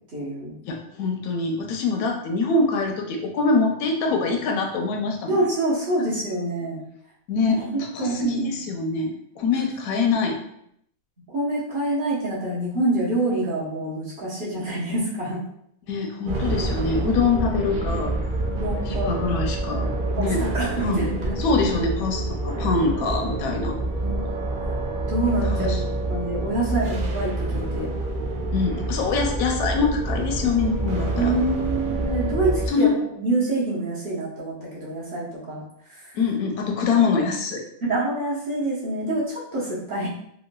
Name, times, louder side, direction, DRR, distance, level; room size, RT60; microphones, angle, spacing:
voice 1, 0.1-0.5 5.3-6.8 7.6-8.5 11.3-15.4 17.5-17.6 18.5-19.1 20.2-21.4 24.0-24.1 25.1-25.8 26.1-27.9 31.1-35.6 35.9-36.1 37.8-40.1, right 2 dB, 40° right, -8 dB, 1.0 m, -26 dB
voice 2, 0.7-5.5 7.3-10.4 15.9-18.1 18.9-19.9 20.2-20.5 20.8-21.1 21.4-23.8 25.4-25.8 28.5-31.3 32.7-32.9 36.1-37.6, left 4 dB, 80° left, 3 dB, 1.0 m, -24 dB
sound 1, 16.3-32.7, right 2 dB, 70° right, 0.5 m, -27 dB
3.8 x 2.0 x 2.2 m, 0.72 s
omnidirectional pair, 1.5 m